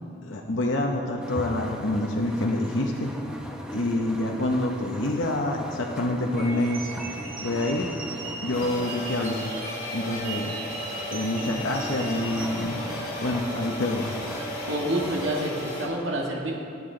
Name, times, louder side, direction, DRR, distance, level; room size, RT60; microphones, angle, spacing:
voice 1, 0.2-3.1 3.7-7.0 7.4-7.9 8.4-9.5 9.9-10.6 11.1-12.8 13.2-14.1, left 1 dB, 75° left, 0 dB, 0.9 m, -27 dB
sound 1, 1.2-15.4, equal, 5° right, 0.9 m, -39 dB
sound 2, 6.3-12.6, right 3 dB, 45° right, 2.7 m, -38 dB
sound 3, 8.5-15.9, left 1 dB, 50° left, 3.1 m, -35 dB
voice 2, 14.6-16.5, right 1 dB, 75° right, -2 dB, 1.8 m, -28 dB
19.0 x 9.0 x 3.9 m, 2.5 s
head